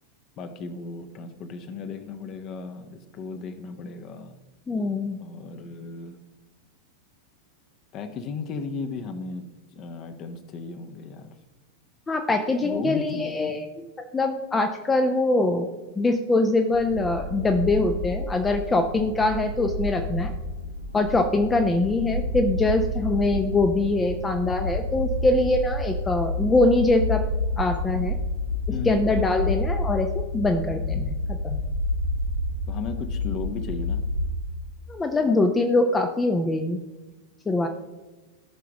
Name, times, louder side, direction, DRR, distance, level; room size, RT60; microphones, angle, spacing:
voice 1, 0.4-4.4 5.2-6.2 7.9-9.4 9.7-11.3 12.6-13.6 28.7-29.1 32.7-34.0, left 4 dB, 35° left, 8 dB, 1.0 m, -35 dB
voice 2, 4.7-5.2 12.1-13.9 14.1-15.7 16.0-20.3 20.9-27.2 27.6-28.2 28.9-30.1 30.3-31.6 34.9-36.8 37.5-37.7, left 2 dB, 15° left, 5 dB, 0.7 m, -23 dB
sound 1, 16.7-34.3, left 1 dB, 85° right, 0.8 m, -29 dB
15.5 x 6.0 x 3.0 m, 1.2 s
figure-of-eight pair, 90°, 0 cm